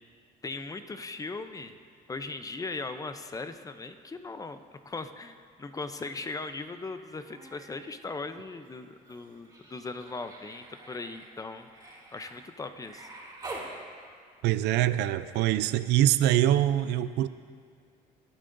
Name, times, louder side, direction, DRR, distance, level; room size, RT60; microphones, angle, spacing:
voice 1, 0.4-1.8 2.1-13.1, left 3 dB, 20° left, 9 dB, 0.6 m, -39 dB
Human voice, 7.0-7.8 8.1-13.7 15.3-15.4, right 2 dB, 20° right, 3.4 m, -47 dB
voice 2, 14.4-17.3, right 12 dB, 80° right, 13 dB, 0.5 m, -24 dB
20.5 x 11.5 x 2.6 m, 2.1 s
cardioid pair, 110°, 17 cm